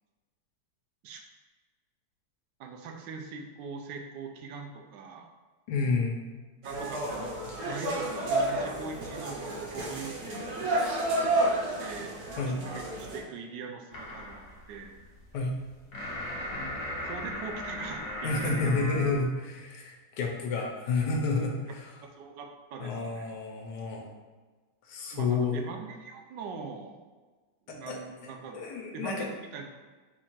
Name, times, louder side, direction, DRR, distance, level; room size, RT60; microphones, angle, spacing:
voice 1, 2.6-5.3 6.6-12.3 12.6-14.9 17.0-18.7 21.7-21.8 22.0-23.3 25.1-27.0 27.7-29.7, right 5 dB, 80° right, 3 dB, 1.2 m, -42 dB
voice 2, 5.7-6.2 12.4-12.6 15.3-15.6 18.2-21.9 22.8-24.1 24.9-25.6 27.7-29.3, left 3 dB, 75° left, 0 dB, 1.3 m, -30 dB
sound 1, 6.6-13.2, right 1 dB, 60° right, 1.3 m, -31 dB
sound 2, 13.9-19.3, left 1 dB, 50° left, 1.0 m, -38 dB
4.4 x 2.4 x 4.4 m, 1.3 s
omnidirectional pair, 1.9 m